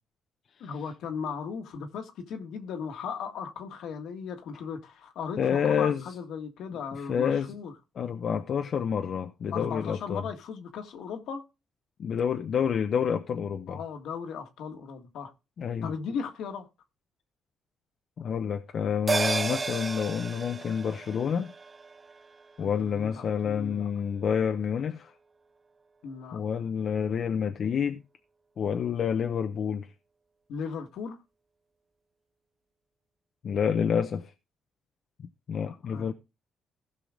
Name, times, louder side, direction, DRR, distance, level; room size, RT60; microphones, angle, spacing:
voice 1, 0.6-7.7 9.5-11.4 13.7-15.3 15.8-16.7 22.6-23.9 26.0-26.4 30.5-31.2 35.9-36.1, left 6 dB, 80° left, 1.7 m, -37 dB
voice 2, 5.4-6.0 6.7-7.5 8.0-10.2 12.0-13.8 15.6-15.9 18.2-21.5 22.6-25.1 26.3-28.0 28.6-29.9 33.4-34.3 35.5-36.1, left 7 dB, 60° left, 0.8 m, -28 dB
sound 1, 19.1-23.8 24.1-24.2, right 4 dB, 30° right, 0.5 m, -34 dB
16.0 x 5.8 x 3.7 m
cardioid pair, 90°, 0 cm